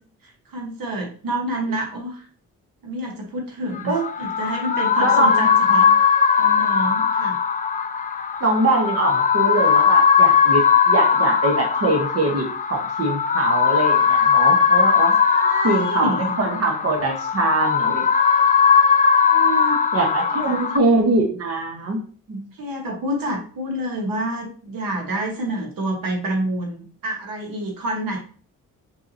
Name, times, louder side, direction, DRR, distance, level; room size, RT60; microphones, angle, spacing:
voice 1, 0.2-2.3 2.8-5.9 6.4-7.4 15.2-16.3 19.2-19.8 20.4-20.6 22.6-28.2, right 1 dB, 70° right, 1 dB, 1.3 m, -28 dB
sound 1, 3.8-20.8, left 6 dB, 25° left, 0.5 m, -19 dB
voice 2, 5.0-5.5 8.4-15.1 15.6-18.1 19.9-22.0 22.3-22.4, right 2 dB, 45° right, 2 dB, 1.3 m, -22 dB
4.7 x 3.9 x 2.7 m, 0.42 s
cardioid pair, 70°, 35 cm